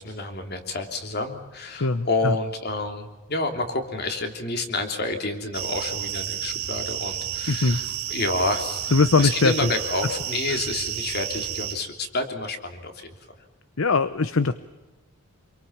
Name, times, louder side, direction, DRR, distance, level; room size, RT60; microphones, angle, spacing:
voice 1, 0.0-13.1, left 2 dB, 45° left, 5 dB, 3.2 m, -29 dB
voice 2, 1.7-2.3 7.5-7.8 8.9-9.5 13.8-14.5, left 3 dB, 65° left, 13 dB, 0.8 m, -21 dB
sound 1, 5.5-11.7, right 10 dB, 80° right, 2.7 m, -31 dB
27.0 x 23.5 x 7.3 m, 1.1 s
head